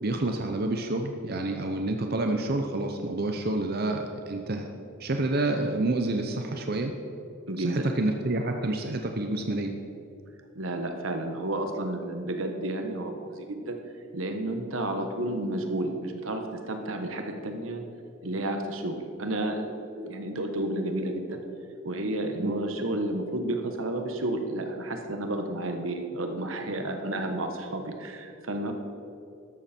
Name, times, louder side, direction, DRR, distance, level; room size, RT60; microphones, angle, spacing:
voice 1, 0.0-4.7 5.0-6.9 7.6-9.7 22.4-22.5, right 2 dB, 50° right, 4 dB, 0.8 m, -28 dB
voice 2, 7.5-7.9 10.5-13.7 14.1-17.8 18.2-21.4 21.8-28.7, right 1 dB, 85° right, 5 dB, 1.4 m, -31 dB
13.5 x 12.0 x 4.4 m, 2.6 s
head